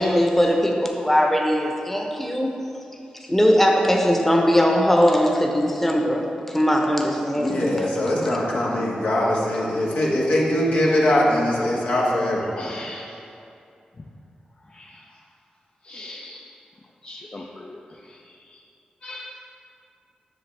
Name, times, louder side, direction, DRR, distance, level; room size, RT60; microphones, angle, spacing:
voice 1, 0.0-2.5 3.3-7.7, equal, 10° left, 0 dB, 0.9 m, -20 dB
voice 2, 7.4-12.4, left 1 dB, 75° left, -5 dB, 1.4 m, -22 dB
voice 3, 12.6-13.1 14.7-15.0 15.8-16.4 17.0-17.8 19.0-19.4, left 2 dB, 40° left, 0 dB, 0.5 m, -38 dB
7.7 x 6.2 x 3.3 m, 2.6 s
cardioid pair, 50°, 3 cm